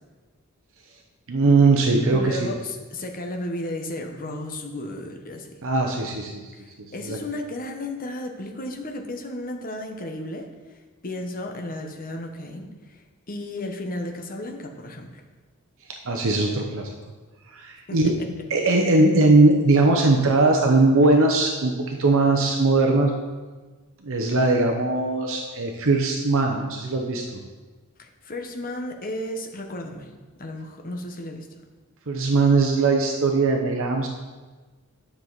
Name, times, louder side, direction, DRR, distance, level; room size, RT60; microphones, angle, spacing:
voice 1, 1.3-2.5 5.6-6.5 7.0-7.2 16.0-16.9 17.5-18.1 18.5-23.1 24.0-27.2 32.1-34.1, right 3 dB, 65° right, 2 dB, 0.8 m, -20 dB
voice 2, 2.1-5.5 6.5-15.2 17.9-18.0 28.0-30.1 30.4-31.5, left 1 dB, 40° left, 3 dB, 1.0 m, -34 dB
10.0 x 6.8 x 4.0 m, 1.3 s
head